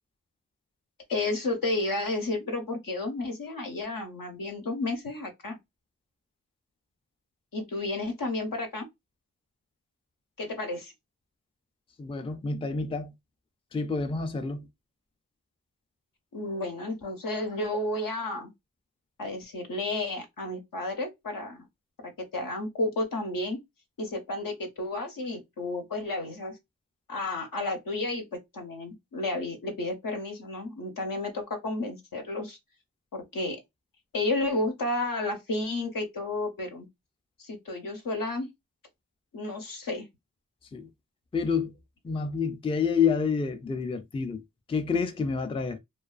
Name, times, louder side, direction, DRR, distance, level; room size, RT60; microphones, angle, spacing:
voice 1, 1.1-5.6 7.5-8.9 10.4-10.9 16.3-18.5 19.2-21.7 22.0-23.6 24.0-26.6 27.1-28.2 28.5-32.6 33.1-33.6 34.1-36.9 37.4-38.5 39.3-40.1, left 2 dB, 70° left, 0.8 m, -32 dB
voice 2, 12.0-13.1 13.7-14.7 40.7-40.9 41.3-41.7 42.0-44.4 44.7-45.8, left 5 dB, 15° left, 0.4 m, -28 dB
2.3 x 2.3 x 2.3 m
cardioid pair, 40°, 35 cm